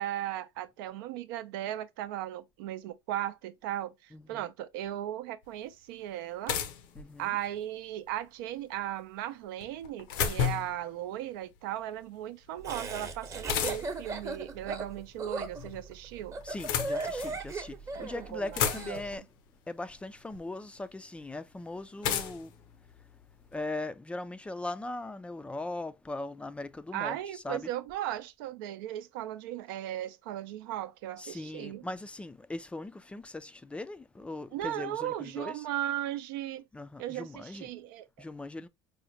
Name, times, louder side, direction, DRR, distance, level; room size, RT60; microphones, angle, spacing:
voice 1, 0.0-6.6 7.2-16.3 18.0-19.0 26.9-31.8 34.5-36.6 37.0-38.1, right 12 dB, 80° right, 0.5 m, -37 dB
voice 2, 4.1-4.5 6.9-7.4 16.4-19.3 19.7-22.5 23.5-27.7 31.2-35.6 36.7-37.7 38.2-38.7, left 2 dB, 10° left, 0.3 m, -39 dB
sound 1, 5.4-5.5 6.5-7.6 9.6-10.8 13.5-14.1 15.2-15.8 16.4-17.4 18.0-18.1 18.3-19.2 20.3-20.4 22.0-23.6, left 8 dB, 75° left, 0.7 m, -33 dB
Laughter, 12.6-19.0, right 3 dB, 25° right, 0.8 m, -37 dB
4.9 x 2.1 x 2.7 m
supercardioid pair, 105°, 11 cm